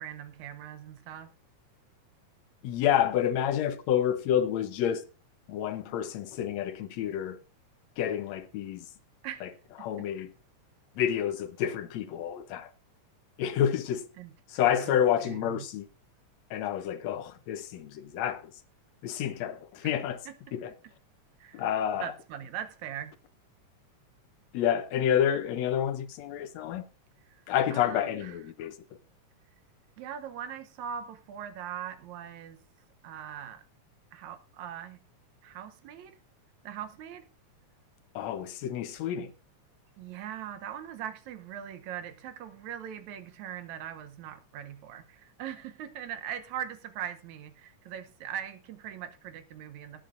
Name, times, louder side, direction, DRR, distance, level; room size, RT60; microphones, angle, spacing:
voice 1, 0.0-1.3 9.2-9.5 9.8-9.9 14.2-14.3 14.6-15.7 19.8-20.0 20.3-20.4 21.4-23.2 27.3-27.4 27.7-28.4 30.0-32.6 33.0-33.6 34.1-35.0 35.4-36.2 36.6-37.3 40.0-50.0, right 9 dB, 75° right, 2.2 m, -41 dB
voice 2, 2.6-5.0 5.5-7.4 8.0-8.9 9.4-9.5 9.8-10.3 11.0-12.7 13.4-14.1 14.5-15.9 16.5-18.5 19.0-20.2 20.5-20.7 21.5-22.1 24.5-26.8 27.5-28.8 38.2-39.3, left 10 dB, 75° left, 1.9 m, -29 dB
18.5 x 10.0 x 2.5 m
omnidirectional pair, 3.3 m